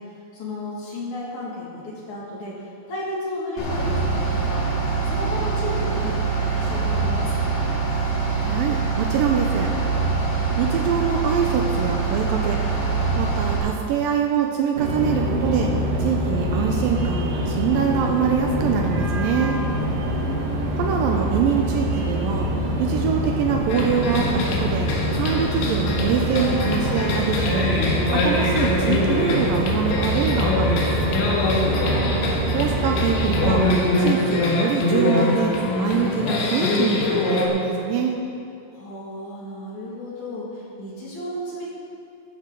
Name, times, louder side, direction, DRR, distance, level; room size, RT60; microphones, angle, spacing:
voice 1, 0.0-4.7 5.0-7.7 20.0-20.6 31.7-32.2 38.7-41.7, left 1 dB, 50° left, -6 dB, 3.1 m, -33 dB
Bus / Idling, 3.6-13.6, right 4 dB, 70° left, 5.3 m, -24 dB
voice 2, 8.5-9.7 10.6-12.6 13.2-15.7 16.0-19.6 20.8-22.5 22.8-24.9 25.2-27.7 28.1-30.9 32.5-33.7 34.0-38.2, right 7 dB, 90° right, 2 dB, 2.0 m, -24 dB
sound 1, 14.8-33.8, right 1 dB, 60° right, 2.7 m, -25 dB
sound 2, 23.7-37.5, left 2 dB, 85° left, 3.7 m, -24 dB
13.0 x 13.0 x 3.8 m, 2.5 s
omnidirectional pair, 5.0 m